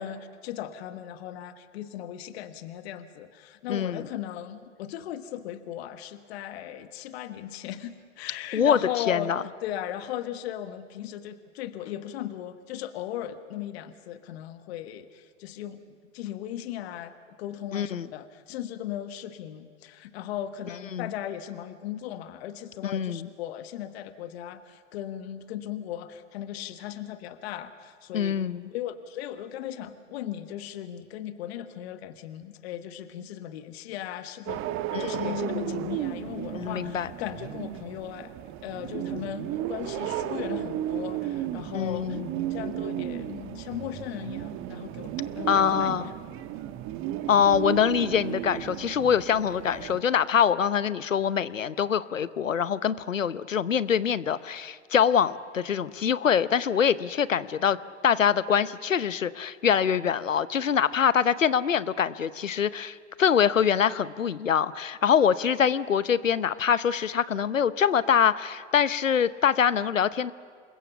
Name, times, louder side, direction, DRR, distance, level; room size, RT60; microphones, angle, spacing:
voice 1, 0.0-9.3 9.6-17.1 17.4-28.4 28.7-34.6 34.9-38.3 38.6-42.2 42.5-46.1, left 11 dB, 55° left, 11 dB, 1.4 m, -37 dB
voice 2, 3.7-4.0 8.5-8.8 9.1-9.4 17.7-18.1 20.9-21.1 22.8-23.3 28.1-28.6 34.9-35.9 36.5-37.1 41.7-42.3 45.5-46.1 47.3-57.8 58.0-70.3, left 8 dB, 90° left, 17 dB, 0.9 m, -24 dB
sound 1, 34.5-50.0, right 12 dB, 35° right, 1.2 m, -34 dB
27.0 x 22.0 x 7.0 m, 2.1 s
hypercardioid pair, 105°, 38 cm